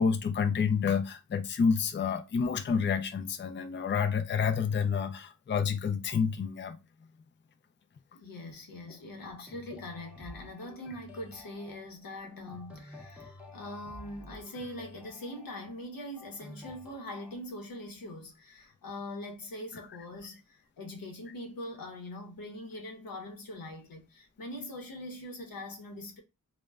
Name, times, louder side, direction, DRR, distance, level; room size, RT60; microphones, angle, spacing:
voice 1, 0.0-6.8, left 6 dB, 35° left, 0.4 m, -29 dB
voice 2, 8.1-26.2, left 1 dB, 85° left, 0.7 m, -42 dB
sound 1, 9.5-17.4, left 1 dB, 5° right, 0.6 m, -51 dB
2.1 x 2.1 x 3.3 m
wide cardioid pair, 65°, 34 cm